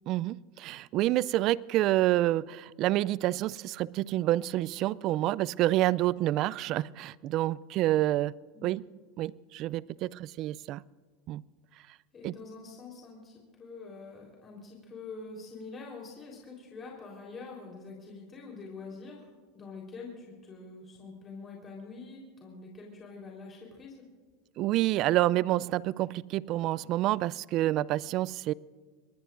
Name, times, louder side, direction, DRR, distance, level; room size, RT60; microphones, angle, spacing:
voice 1, 0.1-8.4 8.6-8.9 9.2-10.8 11.3-11.4 12.2-12.3 24.6-28.5, right 15 dB, 50° right, 0.4 m, -28 dB
voice 2, 12.1-24.0, left 4 dB, 30° left, 4.0 m, -45 dB
25.5 x 20.0 x 2.6 m
hypercardioid pair, 105°, 0 cm